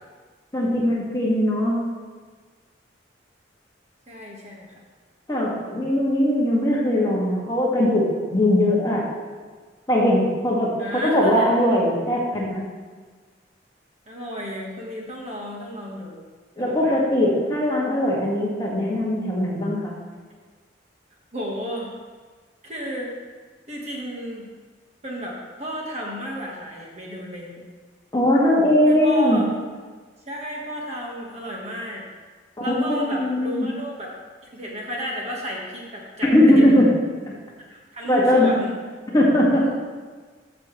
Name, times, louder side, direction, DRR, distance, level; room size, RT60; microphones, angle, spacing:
voice 1, 0.5-1.9 5.3-9.1 9.9-12.6 16.6-20.0 28.1-29.4 32.6-33.7 36.2-36.9 38.1-38.5 39.1-39.6, left 1 dB, 20° left, -5 dB, 1.9 m, -20 dB
voice 2, 4.1-4.8 10.8-11.8 14.1-16.2 16.6-17.0 21.3-21.9 22.6-23.1 23.7-24.5 25.0-27.6 28.9-29.5 30.3-32.0 32.6-34.1 34.5-36.3 36.6-36.9 37.7-38.8, equal, 35° right, -2 dB, 1.5 m, -33 dB
13.5 x 6.8 x 3.2 m, 1.5 s
head